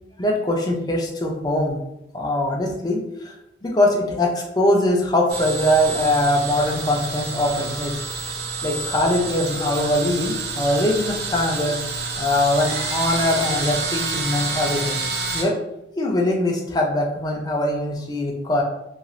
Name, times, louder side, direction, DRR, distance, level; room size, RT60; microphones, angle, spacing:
voice 1, 0.2-1.8 2.1-3.4 3.6-8.0 8.6-11.8 12.2-15.0 15.3-15.5 15.9-18.6, left 1 dB, 20° left, 0 dB, 0.4 m, -22 dB
sound 1, 5.3-15.4, right 3 dB, 60° right, 0.6 m, -28 dB
2.9 x 2.4 x 2.5 m, 0.86 s
head